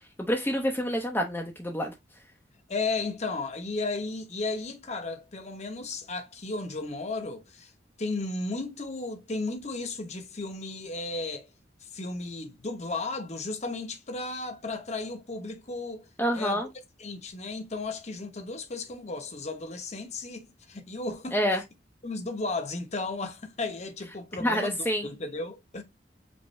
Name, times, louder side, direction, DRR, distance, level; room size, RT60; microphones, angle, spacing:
voice 1, 0.3-1.9 16.2-16.7 21.3-21.6 24.4-25.1, equal, 10° left, 0.6 m, -27 dB
voice 2, 2.7-7.7 8.0-11.5 11.9-16.1 16.3-16.6 17.0-21.4 22.0-25.8, left 3 dB, 40° left, 0.9 m, -34 dB
5.4 x 2.6 x 3.1 m
head